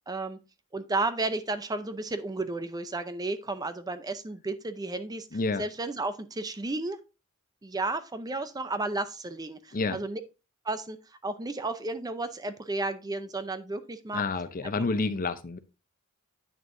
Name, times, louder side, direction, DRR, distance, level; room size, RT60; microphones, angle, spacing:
voice 1, 0.1-0.4 0.7-5.3 5.6-7.0 7.6-10.2 10.6-11.0 11.2-14.2 14.6-14.8, right 2 dB, 15° right, 0.5 m, -33 dB
voice 2, 5.3-5.6 9.7-10.0 14.1-15.6, left 3 dB, 40° left, 0.6 m, -29 dB
9.0 x 6.5 x 2.6 m
head